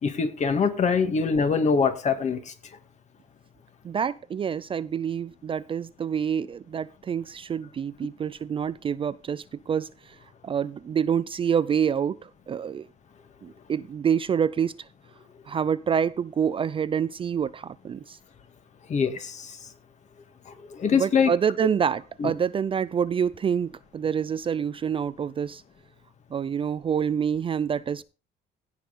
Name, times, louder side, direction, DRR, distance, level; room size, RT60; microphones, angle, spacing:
voice 1, 0.0-2.5 18.9-19.6 20.5-21.3 22.2-22.3, left 5 dB, 45° left, 2.1 m, -24 dB
voice 2, 3.8-10.2 10.4-12.9 13.4-14.9 15.5-18.2 20.9-25.6 26.3-28.0, right 7 dB, 30° right, 0.4 m, -27 dB
16.5 x 5.6 x 4.2 m
cardioid pair, 110°, 17 cm